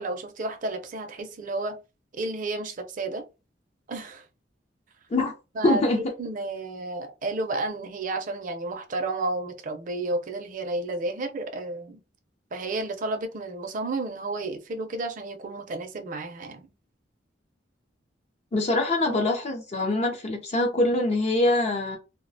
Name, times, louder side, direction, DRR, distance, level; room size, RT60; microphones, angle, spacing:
voice 1, 0.0-1.8 2.1-3.2 3.9-4.2 5.6-5.8 6.2-12.0 12.5-16.7, right 2 dB, 45° right, 0.5 m, -31 dB
voice 2, 5.6-6.0 18.5-22.0, left 2 dB, 35° left, 0.4 m, -24 dB
2.3 x 2.1 x 2.6 m
head